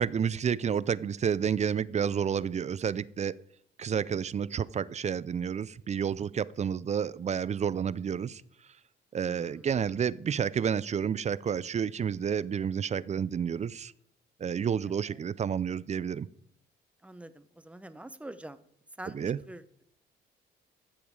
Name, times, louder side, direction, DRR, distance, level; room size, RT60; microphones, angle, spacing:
voice 1, 0.0-3.4 3.8-8.4 9.1-13.9 14.4-16.3 19.1-19.4, right 7 dB, 35° right, 20 dB, 0.4 m, -30 dB
voice 2, 9.2-9.7 15.1-15.2 17.0-18.6 19.0-19.8, right 1 dB, 5° right, 12 dB, 0.8 m, -46 dB
13.5 x 7.2 x 4.7 m, 0.69 s
cardioid pair, 90°, 20 cm